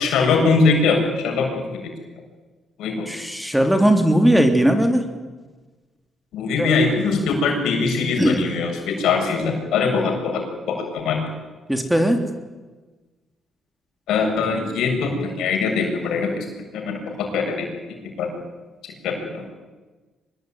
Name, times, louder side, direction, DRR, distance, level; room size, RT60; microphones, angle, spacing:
voice 1, 0.0-1.8 2.8-3.1 6.3-10.4 10.7-11.2 14.1-16.4 16.7-17.0 17.3-17.5 18.0-18.4 19.0-19.4, left 4 dB, 85° left, 2 dB, 7.5 m, -22 dB
voice 2, 3.1-5.0 6.6-6.7 8.2-8.4 11.7-12.2, right 1 dB, 5° right, 5 dB, 3.4 m, -18 dB
24.5 x 21.0 x 9.5 m, 1.3 s
cardioid pair, 95°, 0 cm